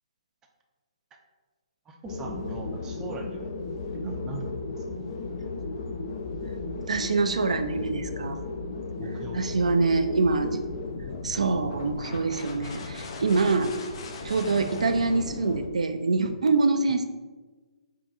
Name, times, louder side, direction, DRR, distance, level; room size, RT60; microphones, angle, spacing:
voice 1, 1.9-3.5 3.9-4.8 8.9-9.5, right 3 dB, 15° right, 2 dB, 0.4 m, -40 dB
sound 1, 2.1-15.7, left 3 dB, 50° left, 0.5 m, -35 dB
voice 2, 6.9-8.4 9.3-10.6 11.2-13.7 14.2-17.0, right 3 dB, 80° right, 8 dB, 0.3 m, -25 dB
3.6 x 2.5 x 4.0 m, 1.3 s
hypercardioid pair, 140°, 4 cm